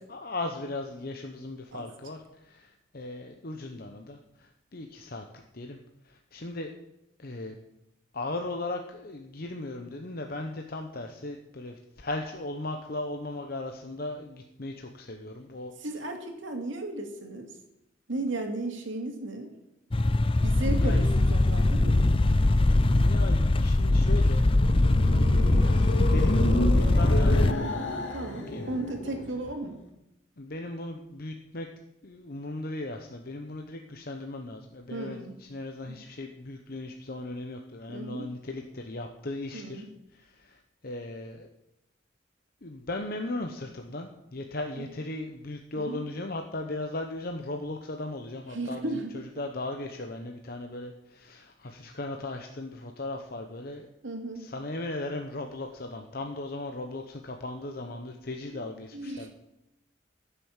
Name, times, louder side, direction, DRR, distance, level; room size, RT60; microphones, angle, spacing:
voice 1, 0.1-5.2 5.5-5.8 6.0-6.7 7.2-7.5 8.1-15.7 20.7-21.2 22.9-24.5 26.1-27.5 28.5-28.7 30.4-31.7 32.0-39.8 40.1-41.5 42.6-53.9 54.4-59.3, left 2 dB, 50° left, 4 dB, 1.0 m, -37 dB
voice 2, 15.8-17.5 18.1-19.5 20.4-22.1 28.1-29.8 34.9-35.4 35.9-36.0 37.9-38.3 39.5-39.9 44.7-44.9 45.7-46.1 48.5-49.2 54.0-54.5 58.5-58.6 58.9-59.3, right 2 dB, 90° right, 4 dB, 2.3 m, -35 dB
sound 1, 19.9-27.5, left 2 dB, 30° left, 0.5 m, -22 dB
sound 2, 24.5-29.6, left 1 dB, 85° left, 2.0 m, -32 dB
15.0 x 7.0 x 7.3 m, 0.87 s
head